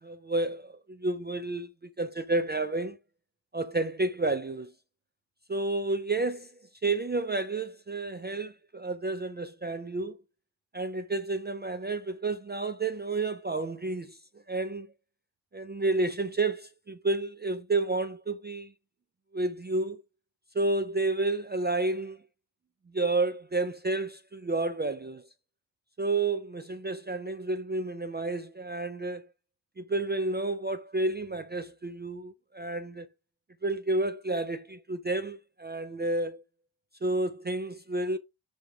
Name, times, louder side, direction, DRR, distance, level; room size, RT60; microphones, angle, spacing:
voice 1, 0.0-1.7 2.0-3.0 3.5-4.7 5.5-6.5 6.8-10.2 10.7-14.2 14.5-14.9 15.5-18.7 19.3-20.0 20.5-22.2 22.9-25.2 26.0-29.3 29.8-33.1 33.6-36.4 37.0-38.2, right 2 dB, 25° right, 0.3 m, -30 dB
7.5 x 3.4 x 4.9 m
wide cardioid pair, 150°, 47 cm